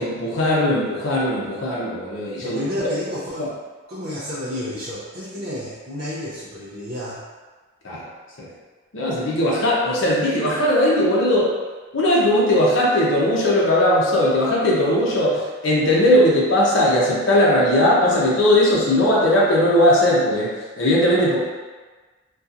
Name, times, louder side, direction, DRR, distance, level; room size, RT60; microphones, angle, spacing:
voice 1, 0.0-2.6 3.4-3.5 7.8-8.1 8.4-8.5 8.9-11.5 11.9-21.4, left 1 dB, 60° left, -5 dB, 0.6 m, -18 dB
voice 2, 2.4-3.5 3.9-7.2, left 1 dB, 50° right, -9 dB, 0.4 m, -30 dB
2.7 x 2.3 x 2.4 m, 1.3 s
head